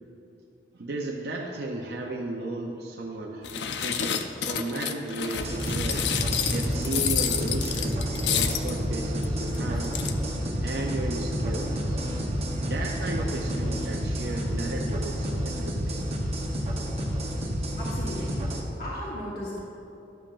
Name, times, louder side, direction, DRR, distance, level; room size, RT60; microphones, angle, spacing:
voice 1, 0.7-10.0 10.6-12.0 12.7-16.2, right 2 dB, 60° right, -1 dB, 0.5 m, -35 dB
sound 1, 3.4-8.8 9.2-9.3 9.5-9.6 9.8-10.1, left 8 dB, 70° left, 0.4 m, -29 dB
sound 2, 5.4-18.6, equal, 35° right, 0.8 m, -29 dB
voice 2, 17.8-18.5 18.8-19.6, left 1 dB, 55° left, -7 dB, 1.2 m, -36 dB
11.5 x 7.2 x 2.5 m, 2.8 s
head